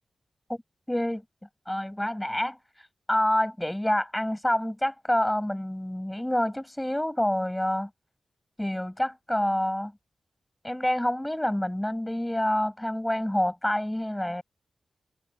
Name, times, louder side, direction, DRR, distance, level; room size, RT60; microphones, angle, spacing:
voice 1, 0.9-1.2 1.7-2.6 3.1-7.9 8.6-9.9 10.6-14.4, left 1 dB, 10° left, 7.3 m, -27 dB
cardioid pair, 65°, 0 cm